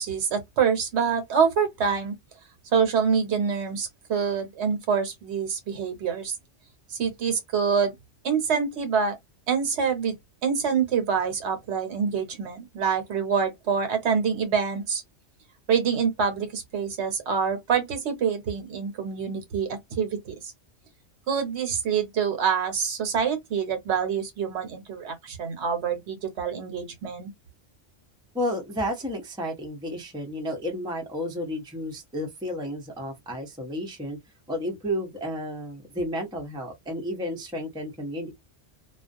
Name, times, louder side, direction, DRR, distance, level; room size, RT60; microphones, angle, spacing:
voice 1, 0.0-2.1 2.7-6.3 6.9-7.9 8.2-9.2 9.5-10.2 10.4-15.0 15.7-20.4 21.3-27.3, right 6 dB, 70° right, 1.0 m, -26 dB
voice 2, 28.3-34.2 34.5-38.3, equal, 5° right, 0.5 m, -32 dB
2.3 x 2.1 x 2.5 m
omnidirectional pair, 1.2 m